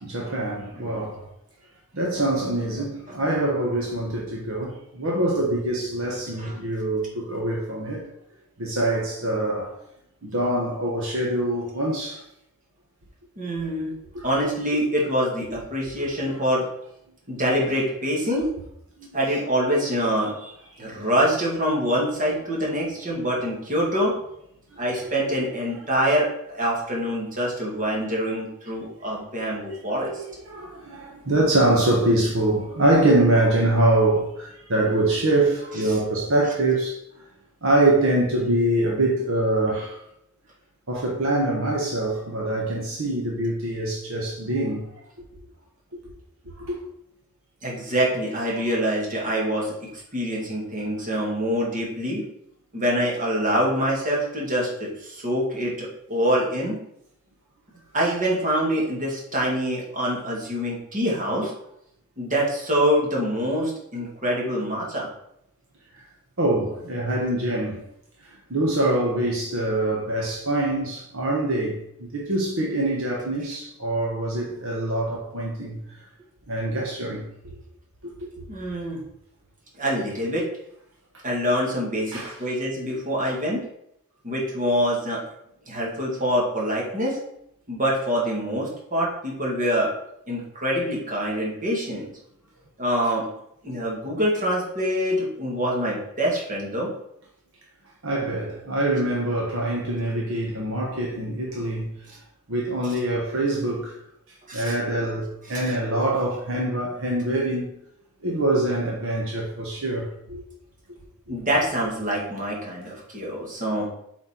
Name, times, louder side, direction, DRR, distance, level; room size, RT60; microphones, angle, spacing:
voice 1, 0.0-1.2 1.9-8.1 8.6-9.7 10.2-12.2 13.4-13.5 14.1-14.3 16.0-16.4 19.0-19.1 24.9-25.0 29.8-37.0 37.6-40.0 40.9-44.9 45.9-46.0 46.5-46.8 66.4-67.8 68.5-71.8 72.1-75.8 76.5-77.6 78.0-78.3 82.1-82.3 98.0-101.9 102.5-104.0 104.5-107.7 108.2-110.4, right 1 dB, 65° right, 1.2 m, -24 dB
voice 2, 13.4-13.9 14.2-16.7 17.3-18.5 19.1-20.5 20.8-24.2 24.8-30.2 47.6-52.2 52.7-56.8 57.9-61.5 62.2-65.1 78.5-79.0 79.7-80.5 81.2-83.6 84.2-85.2 85.7-87.2 87.7-89.9 90.3-92.1 92.8-93.3 93.6-96.9 104.5-104.7 105.5-105.6 111.3-113.9, equal, 40° right, 2.3 m, -25 dB
7.9 x 4.4 x 4.4 m
head